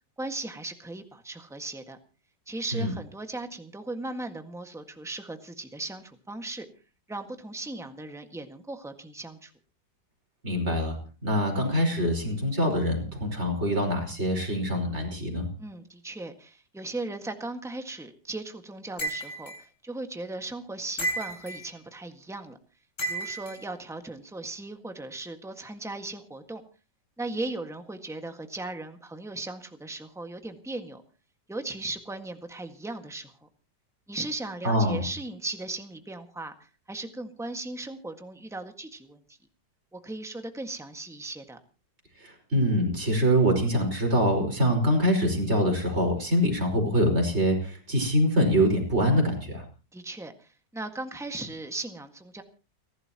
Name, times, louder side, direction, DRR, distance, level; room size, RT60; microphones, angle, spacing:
voice 1, 0.2-2.0 2.5-6.7 7.1-9.5 15.6-22.6 23.0-26.6 27.2-31.0 31.5-33.5 34.1-39.4 39.9-41.6 49.9-52.4, right 2 dB, ahead, 5 dB, 1.5 m, -37 dB
voice 2, 10.4-11.0 11.2-15.5 34.6-35.1 42.2-49.6, equal, 35° right, 2 dB, 5.4 m, -24 dB
sound 1, 19.0-19.6 21.0-21.6 23.0-23.6, right 2 dB, 70° left, 4.4 m, -32 dB
30.0 x 12.0 x 3.0 m, 0.35 s
omnidirectional pair, 1.9 m